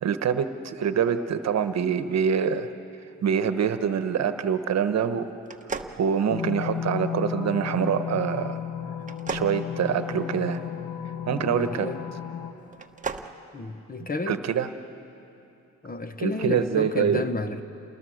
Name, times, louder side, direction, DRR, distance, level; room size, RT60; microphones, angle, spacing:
voice 1, 0.0-2.7 3.2-5.2 6.0-8.6 9.3-10.6 11.2-11.9 14.3-14.7 16.2-17.2, right 7 dB, 60° right, 10 dB, 1.2 m, -25 dB
sound 1, 5.4-6.8 9.0-10.6 12.7-13.3, right 4 dB, 25° right, 1.1 m, -36 dB
sound 2, 6.3-12.5, left 9 dB, 55° left, 1.9 m, -33 dB
voice 2, 11.4-12.0 13.5-14.5 15.8-17.6, left 3 dB, 30° left, 9 dB, 1.2 m, -31 dB
28.5 x 20.5 x 6.4 m, 2.8 s
cardioid pair, 90°, 30 cm